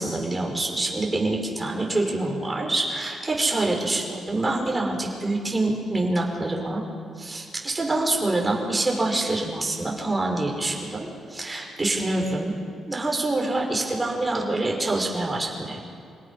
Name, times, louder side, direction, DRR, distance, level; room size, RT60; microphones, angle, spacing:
voice 1, 0.0-6.8 7.2-12.5 12.9-15.8, right 2 dB, 20° right, 0 dB, 5.2 m, -26 dB
27.0 x 18.0 x 5.7 m, 2.4 s
cardioid pair, 70°, 0 cm